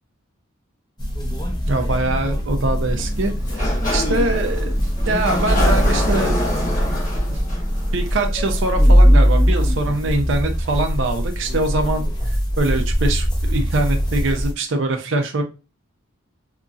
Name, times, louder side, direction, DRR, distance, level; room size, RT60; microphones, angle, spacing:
sound 1, 1.0-14.5, equal, 20° left, 0.6 m, -20 dB
voice 1, 1.7-4.7 5.0-6.4 7.3-7.4 7.9-12.1 12.6-15.4, right 2 dB, 65° right, 5 dB, 0.5 m, -23 dB
Sliding door, 3.4-9.1, equal, 40° left, 1.1 m, -24 dB
2.8 x 2.6 x 2.4 m, 0.30 s
head